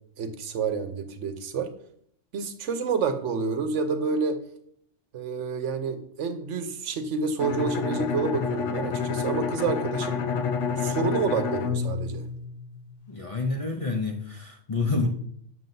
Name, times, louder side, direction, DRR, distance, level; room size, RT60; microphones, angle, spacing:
voice 1, 0.2-1.7 2.3-4.4 5.1-10.2 10.8-12.2, right 5 dB, 75° right, 9 dB, 1.1 m, -28 dB
Bowed string instrument, 7.4-13.1, left 6 dB, 75° left, 1.0 m, -29 dB
voice 2, 13.1-15.1, left 3 dB, 35° left, 1 dB, 0.6 m, -28 dB
7.7 x 7.5 x 2.6 m, 0.64 s
omnidirectional pair, 1.3 m